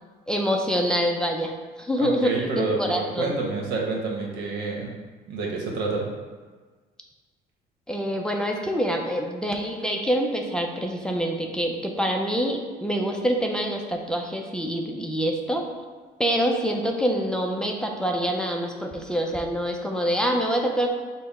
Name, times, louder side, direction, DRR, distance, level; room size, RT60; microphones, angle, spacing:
voice 1, 0.3-3.3 7.9-15.6 16.2-20.9, equal, 5° left, 0 dB, 0.4 m, -26 dB
voice 2, 2.0-4.9 5.3-6.0, right 3 dB, 85° right, -1 dB, 1.0 m, -28 dB
5.6 x 2.1 x 4.1 m, 1.4 s
cardioid pair, 110°, 17 cm